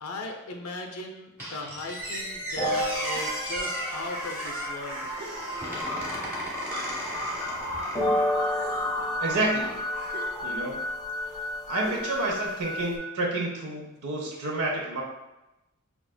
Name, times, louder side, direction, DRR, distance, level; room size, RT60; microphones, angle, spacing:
voice 1, 0.0-5.0, left 2 dB, 75° left, 3 dB, 0.5 m, -38 dB
Squeak, 1.4-8.3, equal, 10° right, 0.8 m, -35 dB
sound 1, 2.0-13.0, left 1 dB, 15° left, 0.3 m, -31 dB
sound 2, 2.9-3.8 4.4-4.5 5.0-6.0 6.5-8.0 8.3-10.8 11.8-12.4, right 2 dB, 45° right, 0.5 m, -46 dB
voice 2, 9.2-9.7 10.4-10.8 11.7-15.0, right 2 dB, 85° right, -2 dB, 0.6 m, -29 dB
4.5 x 2.3 x 2.2 m, 0.97 s
head